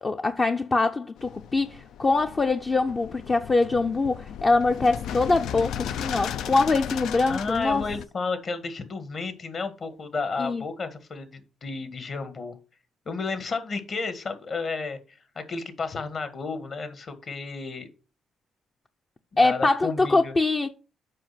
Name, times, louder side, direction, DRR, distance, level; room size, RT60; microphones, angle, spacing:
voice 1, 0.0-7.8 10.4-10.6 19.4-20.7, left 3 dB, 30° left, 0.6 m, -23 dB
sound 1, 1.2-8.1, left 9 dB, 80° left, 0.5 m, -36 dB
voice 2, 7.3-12.6 13.1-17.9 19.3-20.3, left 4 dB, 50° left, 1.7 m, -32 dB
7.6 x 5.2 x 5.7 m
cardioid pair, 90°, 0 cm